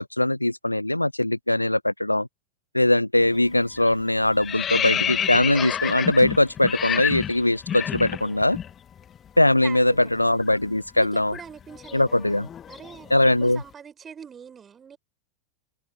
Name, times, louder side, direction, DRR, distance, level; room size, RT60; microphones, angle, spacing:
voice 1, 0.0-2.3 2.7-8.6 9.4-11.4 11.9-12.5 13.1-13.6, left 1 dB, 85° left, 0.5 m, -21 dB
sound 1, 3.2-3.5 3.8-8.7 9.0-9.2 9.5-13.5, left 9 dB, 25° left, 1.5 m, -30 dB
voice 2, 8.1-8.7 9.6-10.0 11.0-12.2 12.7-15.0, right 7 dB, 20° right, 4.6 m, -43 dB
figure-of-eight pair, 90°, 0 cm